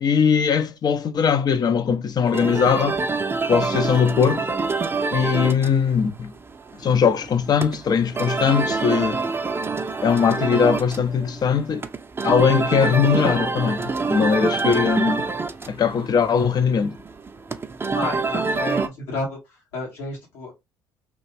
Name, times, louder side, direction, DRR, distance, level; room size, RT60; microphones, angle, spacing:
voice 1, 0.0-3.0 3.5-4.5 5.1-6.3 6.8-9.3 10.0-11.9 12.2-15.3 15.7-17.0, left 6 dB, 40° left, 0.5 m, -20 dB
sound 1, 2.3-18.9, right 4 dB, 20° right, 0.5 m, -26 dB
voice 2, 17.9-19.4 19.7-20.5, left 2 dB, 75° left, 1.7 m, -30 dB
3.0 x 2.4 x 3.1 m
hypercardioid pair, 60°, 11 cm